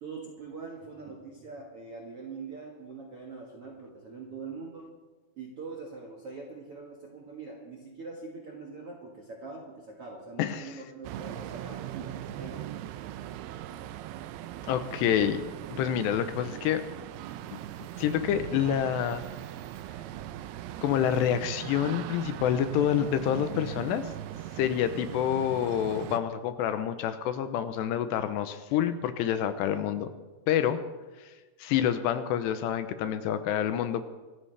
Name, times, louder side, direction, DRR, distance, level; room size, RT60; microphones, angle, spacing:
voice 1, 0.0-4.9 5.4-12.7, right 4 dB, 65° right, -1 dB, 1.4 m, -43 dB
voice 2, 10.4-10.7 14.7-15.4 15.7-16.8 17.5-17.6 18.0-19.2 20.8-24.1 24.6-30.1 30.5-30.8 31.2-31.3 31.6-34.1, left 9 dB, 80° left, 10 dB, 2.8 m, -27 dB
sound 1, 11.0-26.2, right 12 dB, 80° right, 2.4 m, -40 dB
25.5 x 14.0 x 3.3 m, 1.3 s
omnidirectional pair, 5.2 m